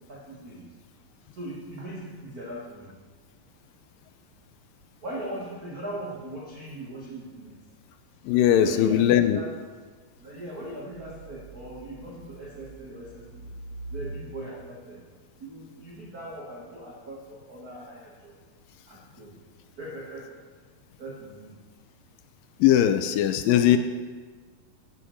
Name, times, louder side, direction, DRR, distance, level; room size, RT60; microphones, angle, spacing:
voice 1, 0.1-0.6 1.4-2.7 5.0-7.5 8.6-9.5 10.2-13.2 13.9-15.0 15.4-17.2 17.5-18.1 18.9-19.3 19.8-20.2 21.0-21.5 23.5-23.8, right 1 dB, 65° right, -3 dB, 0.9 m, -39 dB
voice 2, 8.3-9.4 22.6-23.8, left 11 dB, 80° left, 10 dB, 2.1 m, -20 dB
15.5 x 11.5 x 3.2 m, 1.4 s
omnidirectional pair, 4.2 m